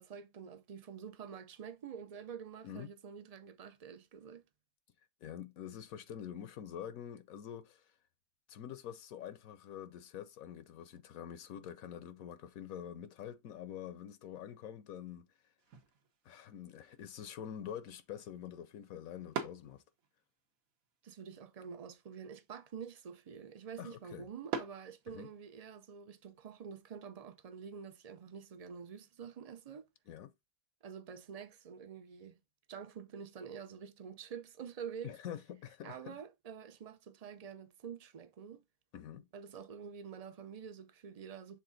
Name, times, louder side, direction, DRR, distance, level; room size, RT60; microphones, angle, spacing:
voice 1, 0.0-4.4 21.0-29.9 30.8-32.4 32.7-35.1 35.8-38.6 39.3-41.6, right 7 dB, 45° right, 0.5 m, -48 dB
voice 2, 5.2-7.9 8.5-15.3 16.2-19.8 23.8-24.3 25.1-25.3 30.1-30.3 35.0-36.2 38.9-39.2, left 9 dB, 70° left, 1.1 m, -46 dB
sound 1, 15.6-25.6, right 6 dB, 70° right, 1.4 m, -48 dB
6.9 x 3.6 x 3.9 m
omnidirectional pair, 1.5 m